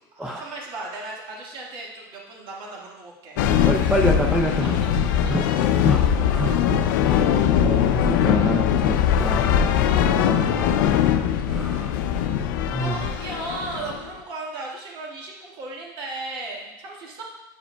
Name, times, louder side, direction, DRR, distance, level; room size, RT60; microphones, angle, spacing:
voice 1, 0.1-3.9 4.6-6.7 12.8-17.2, right 2 dB, 55° right, -2 dB, 1.6 m, -37 dB
sound 1, 3.4-14.1, left 9 dB, 85° left, 0.4 m, -21 dB
voice 2, 3.6-4.8 5.3-13.1, equal, 5° right, 0 dB, 0.5 m, -29 dB
9.3 x 4.9 x 2.2 m, 0.97 s
supercardioid pair, 125°, 10 cm